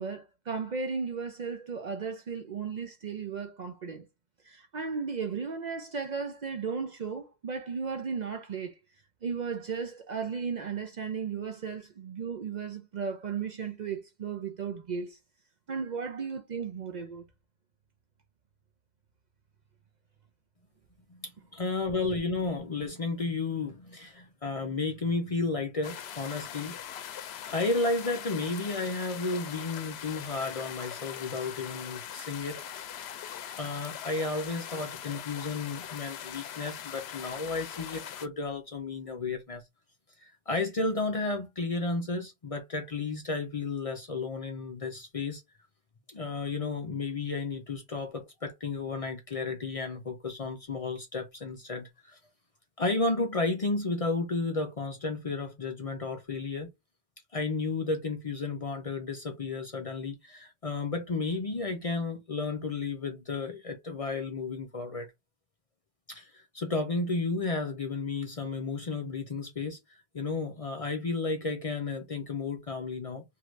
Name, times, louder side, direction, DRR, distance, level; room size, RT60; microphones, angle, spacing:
voice 1, 0.0-4.1 4.4-8.7 9.2-15.2 15.7-17.2, right 5 dB, 55° right, 0.6 m, -35 dB
voice 2, 21.1-26.8 27.5-32.6 33.6-39.6 40.2-45.4 46.1-52.2 52.8-56.7 57.3-65.1 66.1-69.8 70.1-73.2, left 3 dB, 40° left, 0.6 m, -33 dB
sound 1, 25.8-38.3, left 9 dB, 80° left, 0.8 m, -41 dB
3.2 x 2.7 x 2.4 m
omnidirectional pair, 1.1 m